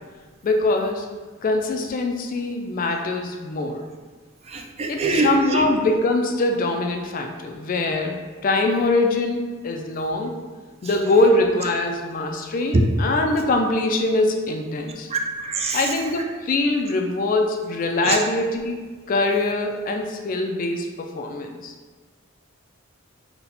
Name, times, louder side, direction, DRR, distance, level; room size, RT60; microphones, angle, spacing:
voice 1, 0.4-1.1 1.4-3.8 4.9-10.3 10.8-15.1 15.7-21.7, left 2 dB, 45° left, 3 dB, 0.4 m, -23 dB
voice 2, 4.5-5.7 12.7-12.8 15.1-15.8 18.0-18.2, right 3 dB, 30° right, 2 dB, 0.4 m, -23 dB
4.0 x 2.2 x 4.1 m, 1.4 s
head